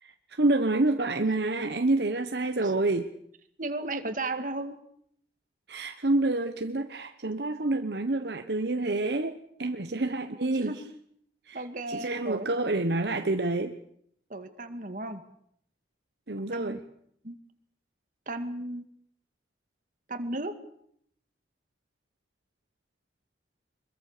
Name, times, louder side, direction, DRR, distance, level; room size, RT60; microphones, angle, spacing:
voice 1, 0.0-3.1 5.7-10.7 11.5-13.8 16.3-16.8, right 2 dB, 70° right, 7 dB, 1.1 m, -28 dB
voice 2, 3.6-4.8 10.0-10.8 11.5-12.5 14.3-15.2 16.5-16.8 17.2-17.4 18.3-18.8 20.1-20.5, right 2 dB, 50° right, 7 dB, 2.1 m, -35 dB
24.5 x 22.0 x 6.7 m, 0.69 s
head